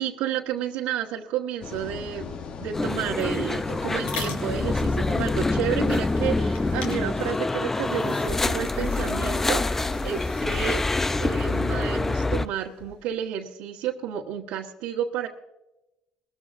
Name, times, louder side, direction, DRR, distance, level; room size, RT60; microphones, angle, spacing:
voice 1, 0.0-10.8 11.2-15.3, right 9 dB, 80° right, -3 dB, 1.3 m, -31 dB
sound 1, 1.6-7.4, left 6 dB, 45° left, 1.1 m, -38 dB
sound 2, 2.7-12.5, left 2 dB, 15° left, 0.4 m, -26 dB
sound 3, 3.3-13.1, left 4 dB, 70° left, 4.0 m, -43 dB
21.5 x 14.0 x 2.6 m, 0.96 s
cardioid pair, 105°, 2 cm